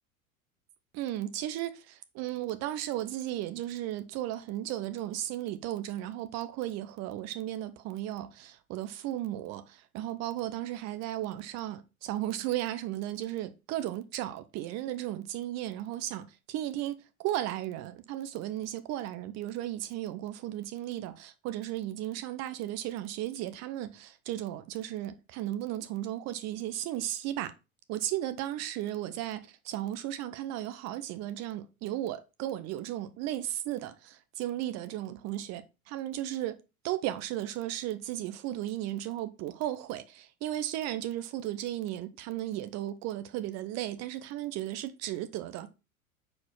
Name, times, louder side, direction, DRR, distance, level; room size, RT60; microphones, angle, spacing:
voice 1, 0.9-27.5 27.9-36.6 36.8-45.7, right 13 dB, 40° right, 0.8 m, -35 dB
4.9 x 4.1 x 4.7 m
figure-of-eight pair, 85°, 42 cm